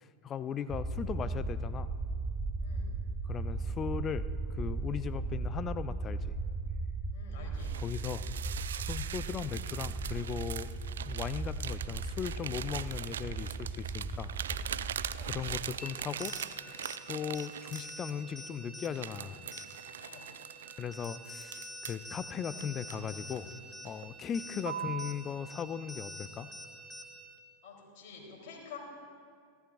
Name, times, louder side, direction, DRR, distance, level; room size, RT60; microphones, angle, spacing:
voice 1, 0.0-1.9 3.2-6.3 7.7-10.7 11.1-14.3 15.2-16.4 16.6-19.5 20.8-23.5 23.8-26.5, left 7 dB, 25° left, 15 dB, 0.5 m, -38 dB
sound 1, 0.7-15.6, right 3 dB, 15° right, 0.6 m, -37 dB
voice 2, 2.6-2.9 7.1-7.7 15.0-15.3 20.0-20.3 24.2-24.3 27.6-28.8, left 6 dB, 45° left, -2 dB, 3.6 m, -49 dB
sound 2, 7.6-18.4 18.8-22.1 22.6-23.5 23.9-24.1 24.6-25.2, right 9 dB, 65° right, 0.3 m, -41 dB
sound 3, 15.8-27.4, equal, 5° left, 1.2 m, -47 dB
29.0 x 13.5 x 2.6 m, 2.1 s
figure-of-eight pair, 90°, 0 cm